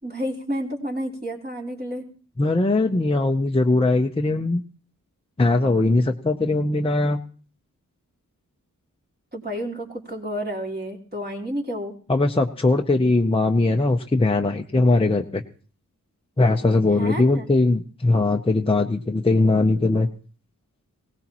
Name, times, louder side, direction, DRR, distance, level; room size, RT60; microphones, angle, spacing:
voice 1, 0.0-2.1 9.3-11.9 16.9-17.4, equal, 30° right, -2 dB, 3.4 m, -30 dB
voice 2, 2.4-4.6 5.4-7.2 12.1-15.4 16.4-20.1, left 2 dB, 15° left, 3 dB, 0.7 m, -20 dB
19.5 x 18.0 x 3.0 m, 0.41 s
wide cardioid pair, 85°, 32 cm